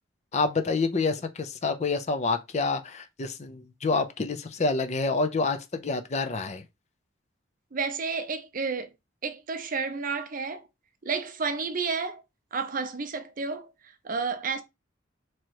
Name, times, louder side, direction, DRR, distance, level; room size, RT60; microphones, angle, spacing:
voice 1, 0.3-6.6, left 3 dB, 35° left, 0.5 m, -28 dB
voice 2, 7.7-8.9 9.2-10.6 11.0-12.2 12.5-14.6, right 4 dB, 45° right, 0.6 m, -31 dB
3.1 x 2.9 x 4.5 m
head